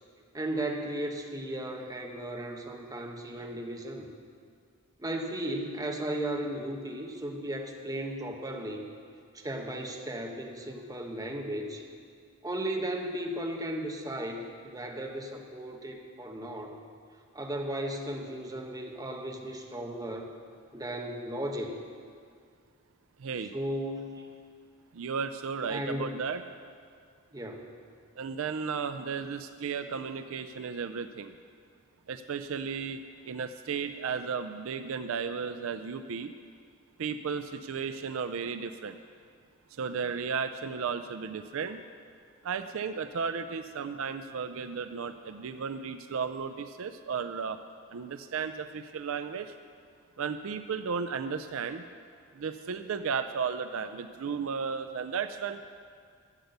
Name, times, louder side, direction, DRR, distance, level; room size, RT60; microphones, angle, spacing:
voice 1, 0.3-4.1 5.0-8.8 9.3-11.8 12.4-16.8 17.3-20.3 20.7-21.7 23.5-24.3 25.7-26.2 27.3-27.7, right 1 dB, 15° right, 1 dB, 1.0 m, -35 dB
voice 2, 23.2-23.5 24.9-26.4 28.2-31.3 32.1-36.3 37.0-39.0 39.7-41.8 42.4-47.6 47.9-49.5 50.2-51.8 52.3-55.6, right 6 dB, 65° right, 9 dB, 0.4 m, -34 dB
12.0 x 8.1 x 6.6 m, 2.1 s
head